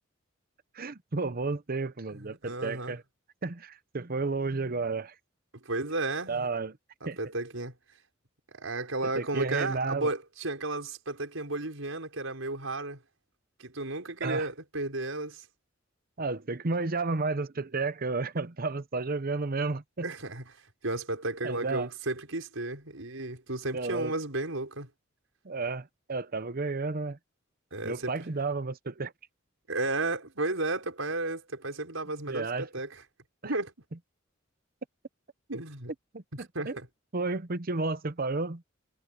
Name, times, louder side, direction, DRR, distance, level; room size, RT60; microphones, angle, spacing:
voice 1, 0.7-3.0 3.4-5.1 6.3-6.8 7.0-7.2 9.2-10.1 14.2-14.5 16.2-20.1 21.4-21.9 23.7-24.1 25.4-27.2 27.8-29.1 32.3-32.7 33.4-33.5 36.1-36.8 37.1-38.6, right 3 dB, 45° right, 0.9 m, -32 dB
voice 2, 2.1-3.0 5.5-6.5 7.0-7.7 8.5-13.0 13.6-15.5 20.0-24.9 27.7-28.1 29.7-33.0 33.4-33.7 35.5-35.9 36.3-36.9, right 2 dB, 85° right, 5.4 m, -33 dB
head